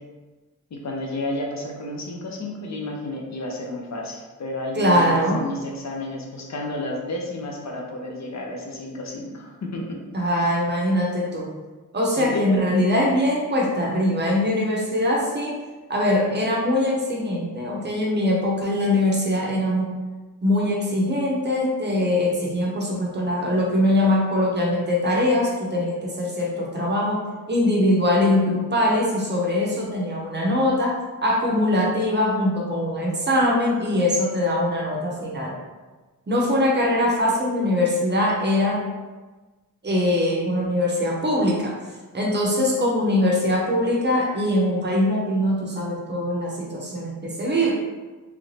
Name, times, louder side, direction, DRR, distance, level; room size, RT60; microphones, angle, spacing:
voice 1, 0.7-10.0 12.2-12.8, left 1 dB, 55° left, 0 dB, 0.6 m, -31 dB
voice 2, 4.7-5.4 10.1-11.5 11.9-15.6 15.9-19.9 20.4-35.5 36.3-38.8 39.8-41.7 42.1-47.7, left 1 dB, 35° right, -2 dB, 0.6 m, -22 dB
3.1 x 2.5 x 3.1 m, 1.3 s
wide cardioid pair, 170°, 32 cm